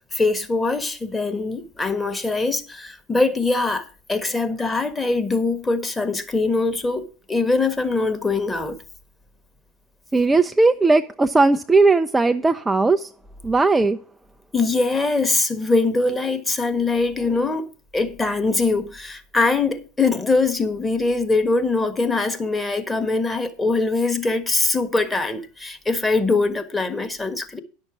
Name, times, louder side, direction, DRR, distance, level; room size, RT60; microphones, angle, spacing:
voice 1, 0.1-8.8 14.5-17.6 17.9-27.6, left 3 dB, 15° left, 1.4 m, -22 dB
voice 2, 10.1-13.1 13.4-14.0 17.3-17.4, right 3 dB, 15° right, 0.5 m, -18 dB
10.5 x 6.6 x 6.2 m
hypercardioid pair, 85°, 0 cm